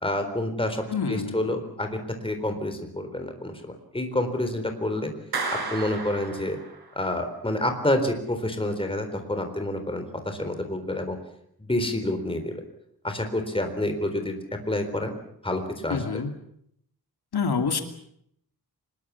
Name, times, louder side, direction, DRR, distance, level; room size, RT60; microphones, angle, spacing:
voice 1, 0.0-0.8 1.1-5.1 5.7-6.6 7.0-11.2 11.6-12.6 13.0-14.4 14.7-15.1 15.4-16.2, left 1 dB, 15° left, 6 dB, 4.0 m, -28 dB
voice 2, 0.9-1.5 15.9-16.3 17.3-17.8, left 5 dB, 85° left, 6 dB, 2.6 m, -27 dB
Clapping, 5.3-7.0, right 4 dB, 75° right, 4.5 m, -33 dB
25.0 x 21.5 x 7.2 m, 0.71 s
wide cardioid pair, 145°, 38 cm